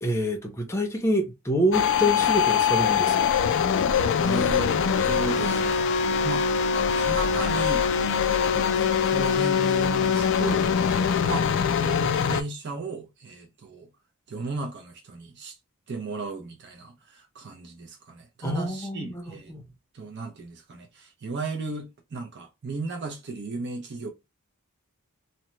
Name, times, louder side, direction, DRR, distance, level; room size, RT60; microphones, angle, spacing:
voice 1, 0.0-3.3 18.4-19.6, equal, 10° left, 0.6 m, -27 dB
sound 1, 1.7-12.4, left 7 dB, 60° left, 0.3 m, -23 dB
voice 2, 4.2-4.7 5.0-6.5 6.9-8.4 8.7-13.9 14.3-15.6 15.9-19.5 19.9-24.1, right 4 dB, 50° right, 0.6 m, -35 dB
2.8 x 2.1 x 3.0 m
head